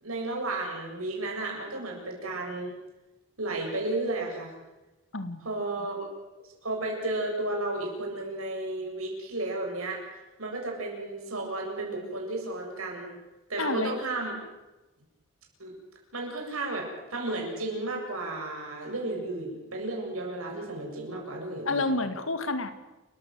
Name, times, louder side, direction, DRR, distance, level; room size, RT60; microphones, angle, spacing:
voice 1, 0.0-2.7 3.4-4.5 5.4-6.0 6.6-10.0 10.4-13.2 13.5-14.3 15.6-15.7 16.1-21.9, right 2 dB, 90° right, 0 dB, 7.8 m, -33 dB
voice 2, 5.1-5.4 13.6-13.9 21.7-22.7, left 2 dB, 70° left, 10 dB, 2.1 m, -29 dB
29.5 x 14.5 x 8.0 m, 1.1 s
head